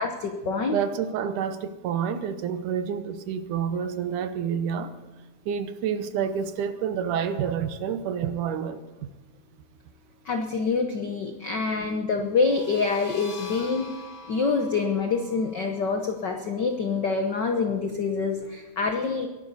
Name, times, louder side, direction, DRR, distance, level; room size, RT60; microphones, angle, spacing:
voice 1, 0.0-0.8 10.2-13.9 14.3-19.3, left 4 dB, 80° left, 4 dB, 0.9 m, -26 dB
voice 2, 0.7-4.9 5.5-8.8, right 8 dB, 80° right, 10 dB, 2.5 m, -28 dB
sound 1, 12.3-17.8, left 3 dB, 45° left, 2.4 m, -46 dB
22.0 x 11.5 x 4.2 m, 1.2 s
omnidirectional pair, 3.6 m